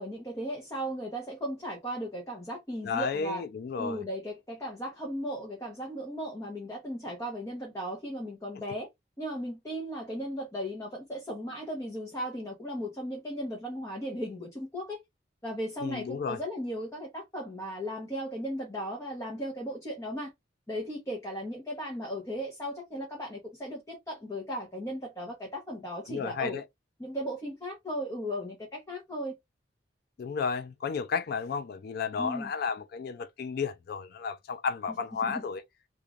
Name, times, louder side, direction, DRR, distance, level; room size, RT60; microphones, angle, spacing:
voice 1, 0.0-3.4 3.8-8.9 9.2-15.0 15.4-20.3 20.7-26.6 27.0-29.3 32.2-32.5 35.2-35.4, equal, 15° left, 0.9 m, -36 dB
voice 2, 2.8-4.0 15.8-16.4 26.1-26.6 30.2-35.6, left 5 dB, 55° left, 0.3 m, -32 dB
3.1 x 2.4 x 2.4 m
head